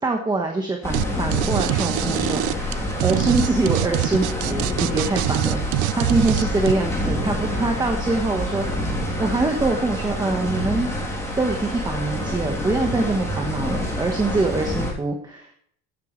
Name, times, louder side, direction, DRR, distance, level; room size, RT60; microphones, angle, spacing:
voice 1, 0.0-5.7 5.9-8.9 9.2-10.9 11.4-15.5, right 3 dB, 15° right, 2 dB, 1.4 m, -24 dB
sound 1, 0.8-14.9, left 1 dB, 10° left, 3.3 m, -27 dB
sound 2, 0.9-1.0 1.3-6.7, right 21 dB, 70° right, 0.4 m, -24 dB
16.5 x 9.2 x 3.3 m, 0.62 s
cardioid pair, 160°, 31 cm